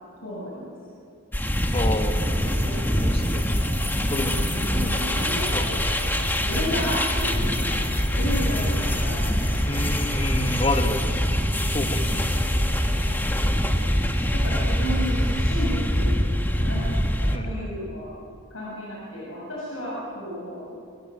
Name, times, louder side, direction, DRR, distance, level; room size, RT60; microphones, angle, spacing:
voice 1, 0.2-0.7 2.3-3.0 4.6-4.9 6.4-9.7 13.8-16.9 17.2-18.1 18.5-20.7, equal, 75° left, -5 dB, 7.2 m, -33 dB
sound 1, 1.3-17.4, equal, 10° left, 1.6 m, -24 dB
voice 2, 1.7-2.2 2.8-3.5 4.1-4.9 5.3-5.7 9.7-11.0 11.7-12.5 17.3-17.5, left 2 dB, 30° left, 5 dB, 2.0 m, -30 dB
sound 2, 1.7-15.4, equal, 70° right, 6.2 m, -37 dB
26.0 x 26.0 x 7.7 m, 2.4 s
head